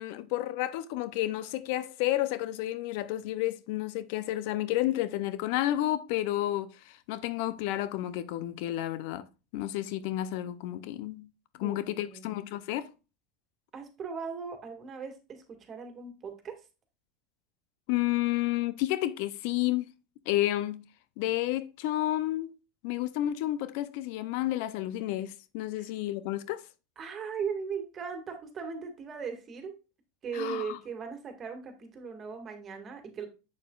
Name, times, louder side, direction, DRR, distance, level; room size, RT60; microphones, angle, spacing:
voice 1, 0.0-9.3 9.5-11.3 11.6-12.9 17.9-19.9 20.3-20.8 21.2-22.5 22.8-26.6 30.3-30.8, left 14 dB, 65° left, 0.5 m, -31 dB
voice 2, 12.1-12.4 13.7-16.6 25.8-25.9 27.0-29.8 30.2-33.3, right 6 dB, 35° right, 1.9 m, -38 dB
7.2 x 6.6 x 2.4 m
hypercardioid pair, 90°, 0 cm